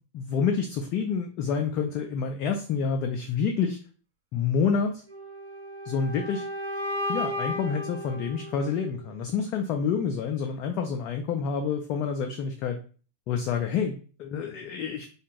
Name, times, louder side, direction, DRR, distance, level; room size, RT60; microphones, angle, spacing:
voice 1, 0.1-3.8 4.3-5.0 5.8-6.5 7.1-12.8 13.3-15.1, left 6 dB, 40° left, 4 dB, 0.3 m, -28 dB
sound 1, 5.1-9.1, equal, 70° right, 0.8 m, -34 dB
2.5 x 2.3 x 2.9 m, 0.40 s
figure-of-eight pair, 90°, 0 cm